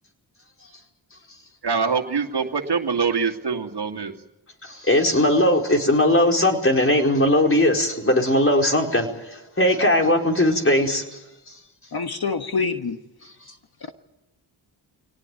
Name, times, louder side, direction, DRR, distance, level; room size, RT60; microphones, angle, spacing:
voice 1, 1.6-4.1, right 5 dB, 55° right, 2.4 m, -24 dB
voice 2, 4.6-11.2, left 1 dB, 25° left, 4.7 m, -19 dB
voice 3, 11.9-13.0, left 4 dB, 50° left, 1.5 m, -25 dB
24.5 x 18.0 x 9.3 m
cardioid pair, 55°, 48 cm